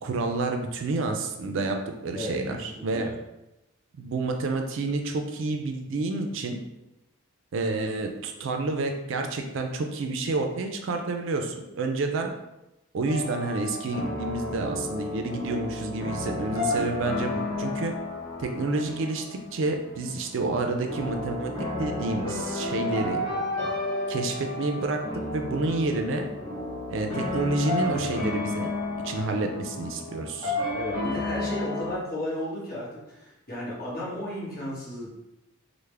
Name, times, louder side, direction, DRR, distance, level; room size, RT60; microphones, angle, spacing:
voice 1, 0.0-3.1 4.0-6.6 7.5-12.3 12.9-17.9 18.4-21.5 21.8-23.2 24.1-25.0 25.3-26.3 26.9-28.7 29.0-30.6, right 3 dB, 60° right, 4 dB, 0.3 m, -29 dB
voice 2, 2.1-3.1 30.7-35.1, left 1 dB, 45° left, -6 dB, 1.1 m, -34 dB
sound 1, 13.1-31.9, left 2 dB, 20° left, 0.9 m, -32 dB
3.4 x 2.1 x 3.2 m, 0.93 s
head